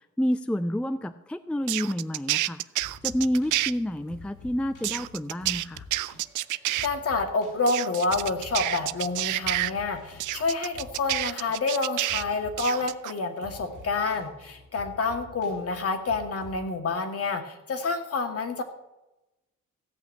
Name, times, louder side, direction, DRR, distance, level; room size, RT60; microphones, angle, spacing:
voice 1, 0.0-2.6 3.0-5.8, equal, 5° left, 10 dB, 0.5 m, -29 dB
sound 1, 1.7-3.7 4.8-6.9 7.7-9.7 10.2-12.2 12.6-13.1, right 17 dB, 80° right, 0.5 m, -28 dB
sound 2, 2.8-16.7, left 3 dB, 90° left, 5.9 m, -48 dB
voice 2, 6.5-18.6, left 3 dB, 50° left, 5 dB, 2.2 m, -28 dB
15.5 x 5.8 x 8.6 m, 0.97 s
cardioid pair, 90°, 30 cm